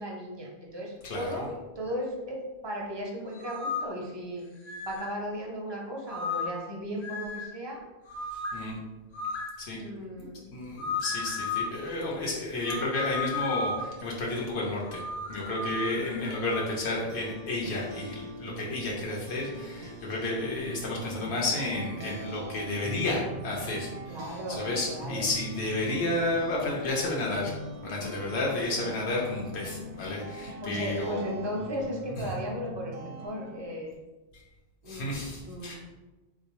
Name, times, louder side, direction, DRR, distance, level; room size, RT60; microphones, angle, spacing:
voice 1, 0.0-4.5 4.8-7.8 9.8-10.5 24.1-25.3 30.6-33.9 34.8-35.2 35.4-35.7, equal, 40° right, -2 dB, 0.4 m, -36 dB
voice 2, 1.0-1.4 8.5-8.8 9.6-9.8 10.2-15.0 15.3-27.5 27.8-31.2 32.2-32.3 34.3-34.4 34.9-35.8, left 2 dB, 80° left, -3 dB, 0.9 m, -31 dB
sound 1, 3.3-3.9 4.6-5.1 6.1-6.6 7.0-7.5 8.1-8.6 9.1-9.6 10.8-11.7 12.6-14.0 14.8-16.7, left 4 dB, 50° left, 0.6 m, -34 dB
sound 2, 16.8-33.7, right 1 dB, 80° right, 0.8 m, -42 dB
3.5 x 2.3 x 2.9 m, 1.1 s
omnidirectional pair, 1.1 m